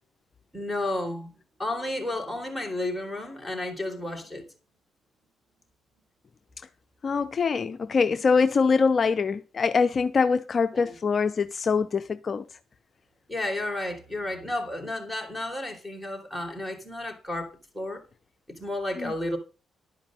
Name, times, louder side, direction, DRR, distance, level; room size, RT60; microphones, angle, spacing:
voice 1, 0.5-1.3 1.6-4.5 7.6-7.7 10.7-10.9 13.3-18.0 18.5-19.4, left 1 dB, 5° right, 3.7 m, -32 dB
voice 2, 7.0-12.4 19.0-19.1, left 5 dB, 40° left, 0.5 m, -24 dB
11.5 x 5.1 x 7.5 m
cardioid pair, 105°, 0 cm